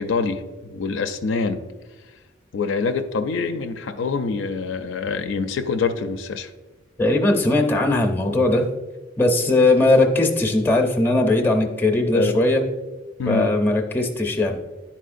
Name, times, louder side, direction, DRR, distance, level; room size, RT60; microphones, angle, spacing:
voice 1, 0.0-1.6 2.5-6.5 12.1-12.4 13.2-13.6, left 4 dB, 65° left, 8 dB, 0.4 m, -25 dB
voice 2, 7.0-8.6 9.2-12.6 13.3-14.6, left 2 dB, 10° left, 3 dB, 0.6 m, -19 dB
10.5 x 4.3 x 2.5 m, 1.2 s
head